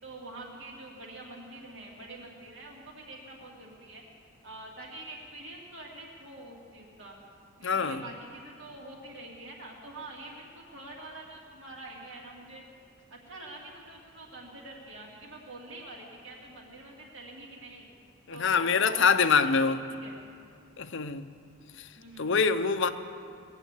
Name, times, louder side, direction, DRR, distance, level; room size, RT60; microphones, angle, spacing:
voice 1, 0.0-4.0 4.4-7.2 7.6-12.6 13.1-17.9 18.3-20.2 22.0-22.3, right 2 dB, 55° right, -1 dB, 2.6 m, -46 dB
voice 2, 7.6-8.0 18.3-19.8 20.8-21.3 21.8-22.9, left 5 dB, 55° left, 10 dB, 0.6 m, -25 dB
19.5 x 7.7 x 8.3 m, 2.4 s
head